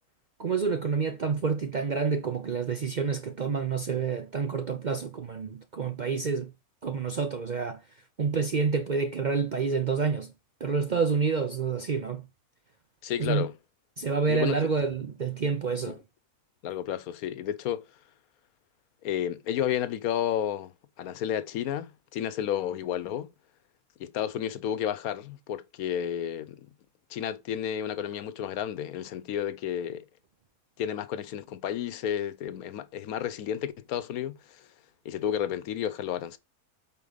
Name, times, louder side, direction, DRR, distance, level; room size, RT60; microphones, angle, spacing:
voice 1, 0.4-6.5 6.8-7.8 8.2-10.3 10.6-12.2 13.2-13.5 14.0-16.0, right 5 dB, 55° right, 0.5 m, -28 dB
voice 2, 13.0-13.5 14.3-14.7 15.9-16.0 16.6-17.8 19.0-23.3 24.0-26.7 27.1-30.0 30.8-34.7 35.0-36.4, left 10 dB, 80° left, 1.2 m, -31 dB
8.3 x 4.3 x 4.0 m
omnidirectional pair, 1.5 m